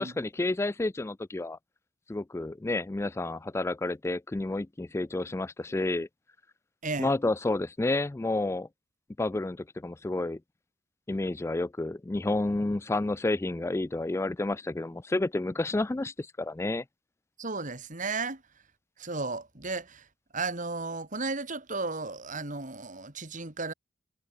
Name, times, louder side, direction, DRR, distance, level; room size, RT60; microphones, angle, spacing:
voice 1, 0.0-1.6 2.1-6.1 7.0-8.7 9.2-10.4 11.1-16.8, left 2 dB, 15° left, 0.3 m, -30 dB
voice 2, 17.4-18.4 19.0-20.0 20.3-23.7, right 3 dB, 40° right, 2.7 m, -34 dB
head